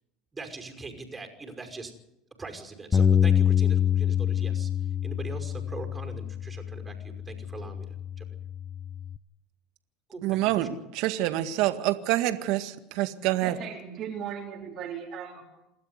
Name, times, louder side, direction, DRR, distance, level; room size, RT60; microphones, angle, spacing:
voice 1, 0.3-1.9 2.4-4.7 5.0-8.3 10.1-10.7, right 3 dB, 20° right, 5 dB, 5.6 m, -42 dB
Bass guitar, 2.9-9.2, left 8 dB, 25° left, 0.8 m, -26 dB
voice 2, 10.2-13.6, right 15 dB, 65° right, 9 dB, 1.9 m, -27 dB
voice 3, 13.4-15.6, right 8 dB, 50° right, -1 dB, 4.1 m, -37 dB
28.0 x 12.5 x 9.7 m, 0.88 s
supercardioid pair, 95°, 0 cm